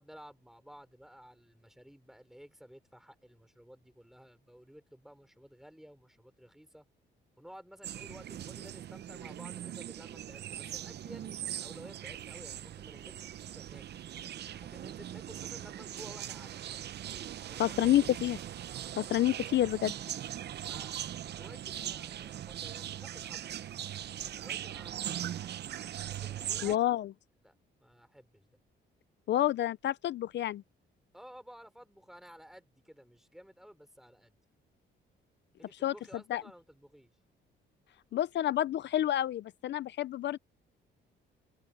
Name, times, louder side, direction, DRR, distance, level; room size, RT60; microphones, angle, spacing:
voice 1, 0.0-6.8 7.4-13.8 14.5-16.7 17.4-17.8 20.6-25.6 26.1-26.8 27.4-27.5 27.8-28.5 31.1-34.4 35.6-37.1, equal, ahead, 4.7 m, -54 dB
sound 1, 7.8-26.8, right 11 dB, 60° right, 0.7 m, -40 dB
voice 2, 17.6-18.4 19.0-19.9 26.6-27.1 29.3-30.6 35.8-35.9 36.3-36.4 38.1-40.4, left 12 dB, 65° left, 0.6 m, -29 dB
cardioid pair, 90°, 20 cm